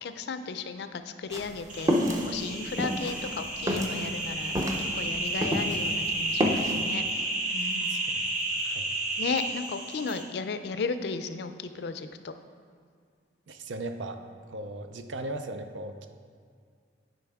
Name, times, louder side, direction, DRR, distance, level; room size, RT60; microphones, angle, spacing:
voice 1, 0.0-1.9 2.2-7.2 7.5-8.0 9.2-12.4, left 4 dB, 60° left, 10 dB, 0.4 m, -35 dB
sound 1, 1.3-5.9 6.2-6.8, equal, 20° right, 0.6 m, -28 dB
sound 2, 1.7-10.2, right 2 dB, 45° right, 1.2 m, -32 dB
voice 2, 7.9-8.9 13.5-16.1, right 2 dB, 85° right, 7 dB, 0.6 m, -38 dB
10.5 x 5.1 x 3.5 m, 2.1 s
head